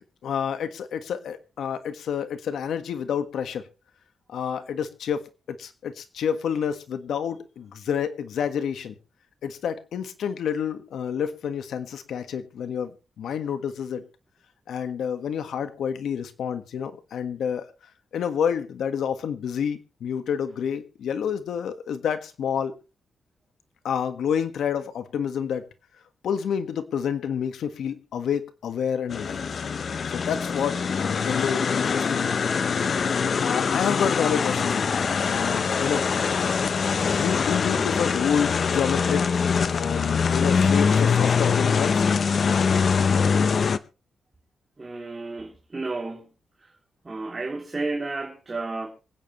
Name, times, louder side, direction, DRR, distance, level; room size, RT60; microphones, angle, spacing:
voice 1, 0.2-3.6 4.3-9.0 9.4-14.0 14.7-17.6 18.1-22.7 23.8-25.6 26.2-29.5 30.1-32.4 33.3-36.5 37.1-39.4 39.7-42.1, left 8 dB, 85° left, 1.5 m, -29 dB
sound 1, 29.1-43.8, left 6 dB, 50° left, 0.8 m, -23 dB
voice 2, 44.8-46.3 47.0-48.9, right 3 dB, 25° right, 3.0 m, -32 dB
26.0 x 9.2 x 3.1 m
cardioid pair, 105°, 0 cm